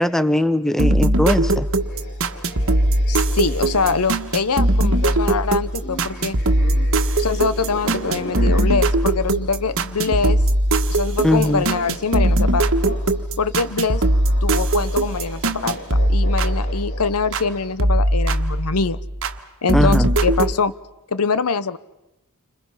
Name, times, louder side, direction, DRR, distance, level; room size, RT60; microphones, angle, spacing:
voice 1, 0.0-1.7 11.2-11.6 19.7-20.1, left 1 dB, ahead, 13 dB, 0.9 m, -19 dB
sound 1, 0.8-17.5 17.8-19.4 19.7-20.5, right 1 dB, 65° right, 1.5 m, -20 dB
sound 2, 1.7-10.4 10.7-17.5, equal, 55° left, 5.0 m, -38 dB
voice 2, 3.1-6.4 7.2-10.4 10.9-12.6 13.4-14.0 14.4-15.8 16.1-19.0 19.6-20.7 21.1-21.8, left 5 dB, 80° left, 15 dB, 0.9 m, -23 dB
29.5 x 26.0 x 5.7 m, 0.95 s
head